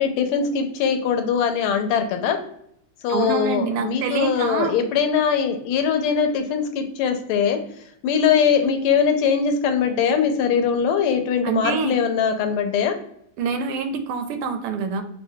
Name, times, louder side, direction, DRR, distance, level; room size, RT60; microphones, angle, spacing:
voice 1, 0.0-2.4 3.0-7.6 8.0-13.0, left 7 dB, 80° left, 6 dB, 1.4 m, -21 dB
voice 2, 3.1-4.7 11.4-11.9 13.4-15.0, right 5 dB, 85° right, 7 dB, 1.5 m, -26 dB
4.8 x 2.1 x 2.7 m, 0.72 s
omnidirectional pair, 2.4 m